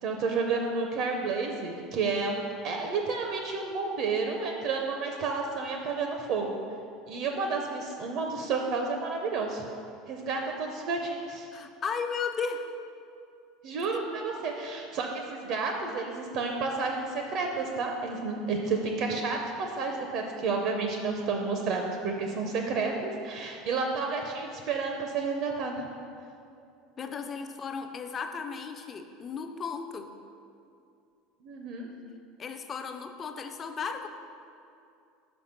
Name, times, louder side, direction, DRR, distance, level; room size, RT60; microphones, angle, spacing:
voice 1, 0.0-6.6 7.1-9.7 10.1-11.5 13.6-25.9 31.4-31.9, right 4 dB, 45° right, 2 dB, 0.5 m, -31 dB
voice 2, 11.5-12.7 27.0-30.1 32.4-34.1, left 5 dB, 20° left, 7 dB, 0.4 m, -35 dB
5.7 x 5.2 x 5.7 m, 2.6 s
cardioid pair, 175°, 0 cm